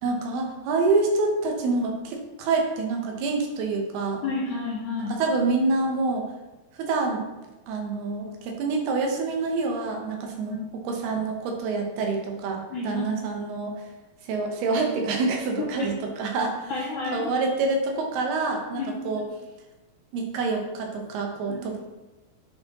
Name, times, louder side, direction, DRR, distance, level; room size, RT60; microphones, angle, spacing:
voice 1, 0.0-4.2 5.0-6.3 6.8-7.2 7.7-10.6 10.8-13.8 14.2-16.7 17.1-19.2 20.1-21.8, right 3 dB, 90° right, 1 dB, 3.0 m, -27 dB
voice 2, 4.2-5.1 10.5-10.6 12.7-13.0 15.8-15.9 16.7-17.3 18.7-19.2 21.5-21.6, left 3 dB, 75° left, -3 dB, 1.8 m, -31 dB
10.0 x 4.4 x 3.0 m, 1.1 s
omnidirectional pair, 4.4 m